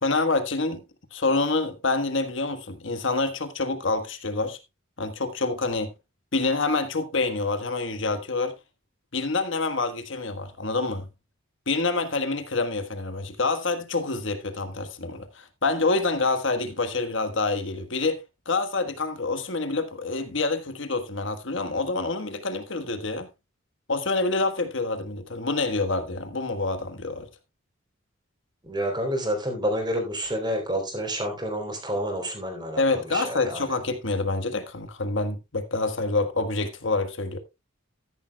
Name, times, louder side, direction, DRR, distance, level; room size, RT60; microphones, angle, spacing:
voice 1, 0.0-0.8 1.1-4.6 5.0-5.9 6.3-8.5 9.1-11.1 11.7-23.3 23.9-27.3 32.8-37.4, left 3 dB, 65° left, 1.5 m, -27 dB
voice 2, 28.6-33.7, equal, 20° right, 3.6 m, -29 dB
13.5 x 11.0 x 2.3 m
head